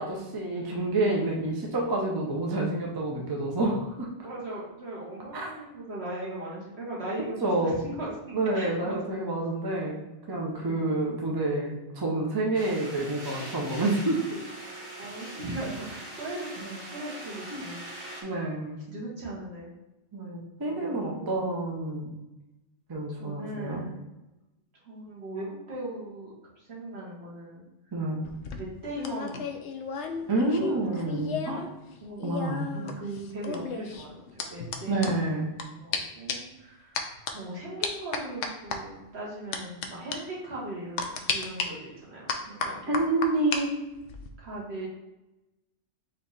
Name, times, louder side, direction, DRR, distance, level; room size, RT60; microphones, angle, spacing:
voice 1, 0.0-4.1 5.3-5.5 7.4-7.8 8.3-10.0 10.3-14.2 16.6-16.8 17.5-17.6 18.2-18.8 20.1-22.1 22.9-23.8 27.9-28.2 30.3-31.6 32.2-32.7 34.9-35.5 42.9-43.7, right 2 dB, 25° right, -1 dB, 0.6 m, -28 dB
voice 2, 4.2-7.3 7.6-9.2 15.0-16.5 16.9-17.8 18.9-19.7 20.6-21.4 23.1-24.0 24.8-27.6 28.5-29.5 30.2-30.3 30.6-31.1 32.0-32.2 32.7-35.2 35.8-37.1 37.3-43.0 44.4-44.9, right 1 dB, 60° right, -5 dB, 1.6 m, -39 dB
sound 1, 12.5-18.2, right 1 dB, 40° right, 1.4 m, -42 dB
sound 2, 28.2-31.7 31.9-35.6 35.9-36.0 36.3-36.6 37.0-37.3 37.8-38.8 39.5-39.9 40.1-40.2 41.0-41.7 42.3-43.6 43.9-44.3, left 5 dB, 75° left, 0.9 m, -33 dB
4.3 x 3.1 x 4.0 m, 0.99 s
omnidirectional pair, 1.2 m